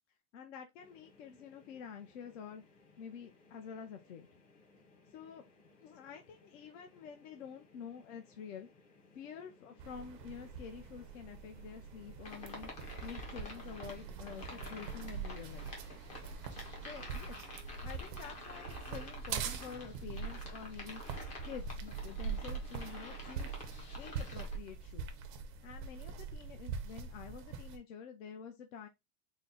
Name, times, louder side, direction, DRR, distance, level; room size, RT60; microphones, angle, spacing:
voice 1, 0.3-2.6 3.0-4.3 5.1-5.4 5.8-8.7 9.1-12.7 13.0-15.7 16.8-21.0 21.4-23.5 24.0-25.1 25.6-28.9, left 7 dB, 60° left, 0.7 m, -48 dB
sound 1, 0.8-14.6, left 3 dB, 40° left, 1.5 m, -64 dB
sound 2, 9.8-27.8, right 6 dB, 35° right, 0.5 m, -43 dB
sound 3, 12.2-24.6, left 2 dB, 15° left, 0.5 m, -50 dB
4.0 x 2.1 x 3.8 m
supercardioid pair, 165°, 44 cm